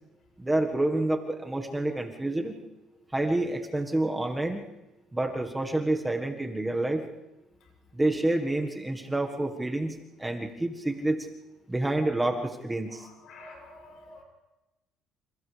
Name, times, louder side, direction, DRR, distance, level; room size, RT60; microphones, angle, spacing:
voice 1, 0.4-2.6 3.1-4.6 5.1-7.0 7.9-11.3 11.7-13.1, right 2 dB, 10° right, 3 dB, 1.6 m, -28 dB
voice 2, 12.9-14.2, left 2 dB, 60° left, 2 dB, 7.7 m, -49 dB
29.0 x 27.5 x 3.4 m, 1.0 s
cardioid pair, 120°, 0 cm